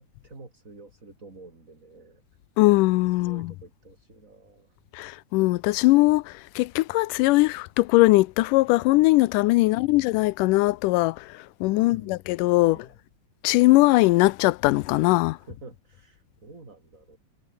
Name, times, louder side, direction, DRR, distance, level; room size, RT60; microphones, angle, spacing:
voice 1, 0.0-2.2 3.1-4.8 9.6-10.0 11.7-12.2 12.6-13.0 15.3-17.2, right 3 dB, 25° right, 4.1 m, -48 dB
voice 2, 2.6-3.5 4.9-12.8 13.4-15.4, left 20 dB, 85° left, 2.2 m, -20 dB
omnidirectional pair, 3.7 m